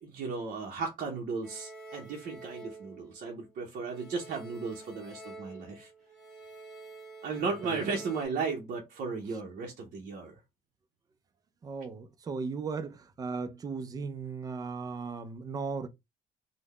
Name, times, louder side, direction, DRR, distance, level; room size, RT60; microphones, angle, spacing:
voice 1, 0.0-5.9 7.2-10.3, right 4 dB, 55° right, 0.7 m, -35 dB
sound 1, 1.4-3.6 3.9-8.3, right 3 dB, ahead, 0.9 m, -48 dB
voice 2, 11.6-15.9, right 4 dB, 25° right, 0.4 m, -37 dB
3.7 x 2.0 x 3.2 m
cardioid pair, 165°, 16 cm